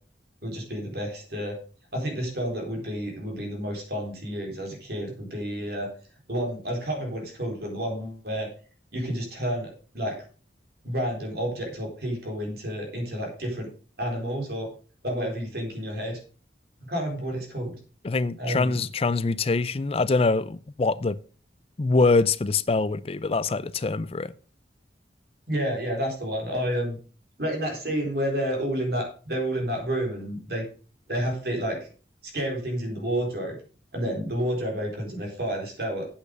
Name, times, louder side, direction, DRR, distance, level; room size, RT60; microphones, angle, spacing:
voice 1, 0.4-1.6 1.9-5.9 6.3-8.5 8.9-10.2 10.8-13.7 14.0-14.7 15.0-16.2 16.8-17.8 18.4-18.8 25.5-27.0 27.4-30.6 31.1-31.8 32.3-33.6 33.9-36.2, equal, 60° right, 4.1 m, -30 dB
voice 2, 18.0-21.2 21.8-24.3, left 3 dB, 35° left, 0.4 m, -24 dB
8.5 x 8.2 x 5.4 m
head